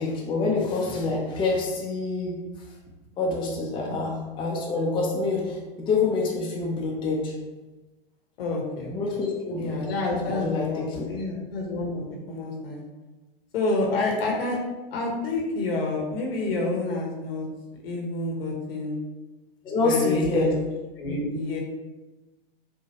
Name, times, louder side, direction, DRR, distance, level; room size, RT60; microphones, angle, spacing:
voice 1, 0.0-2.4 3.2-7.3 8.9-9.8 10.0-11.0 19.6-20.5, left 3 dB, 15° left, -2 dB, 0.6 m, -27 dB
voice 2, 8.4-8.9 9.6-12.8 13.5-14.6 14.9-17.5 17.8-19.0 19.8-20.5 21.0-21.6, left 3 dB, 70° left, -1 dB, 1.1 m, -28 dB
4.6 x 2.2 x 3.0 m, 1.1 s
hypercardioid pair, 115°, 30 cm